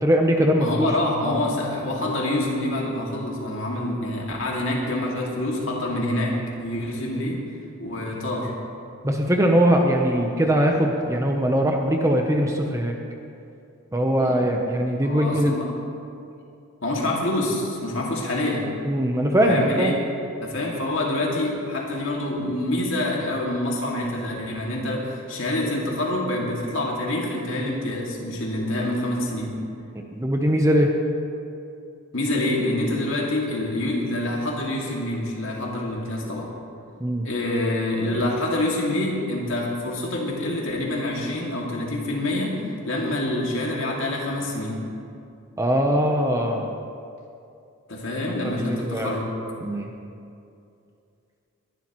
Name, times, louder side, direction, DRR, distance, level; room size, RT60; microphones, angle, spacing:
voice 1, 0.0-0.9 1.3-1.4 7.1-7.3 9.0-13.0 13.9-15.5 18.9-19.9 30.1-30.9 37.0-37.3 45.6-46.7 48.6-49.2 49.6-49.9, equal, 15° right, 2 dB, 0.7 m, -21 dB
voice 2, 0.6-7.4 7.8-8.5 14.2-14.4 15.0-15.7 16.8-18.7 19.3-20.0 20.4-29.6 32.1-36.5 37.2-42.6 42.9-44.8 47.9-49.3, left 1 dB, 60° left, -2 dB, 2.3 m, -26 dB
20.5 x 11.5 x 3.1 m, 2.6 s
head